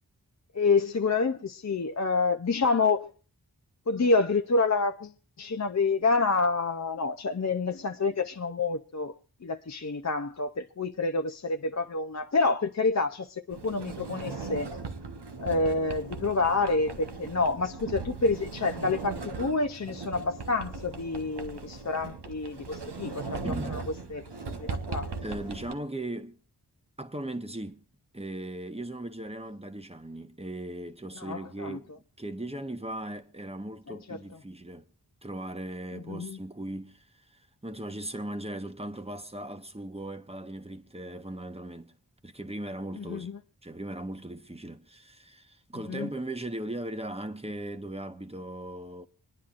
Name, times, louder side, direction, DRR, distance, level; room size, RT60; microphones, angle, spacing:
voice 1, 0.5-3.1 3.9-5.1 5.4-9.1 9.4-14.7 15.4-23.8 24.1-24.2 24.6-25.1 31.2-31.8 36.1-36.4 43.0-43.3 45.9-46.1, left 3 dB, 40° left, 0.6 m, -28 dB
Sliding door, 13.5-25.7, right 4 dB, 80° right, 1.1 m, -38 dB
voice 2, 23.4-23.8 25.2-26.4 27.0-27.8 28.1-31.9 32.2-34.8 35.2-41.9 42.2-43.3 43.6-49.1, right 1 dB, 15° right, 1.0 m, -38 dB
26.5 x 10.0 x 2.5 m
wide cardioid pair, 55°, 40 cm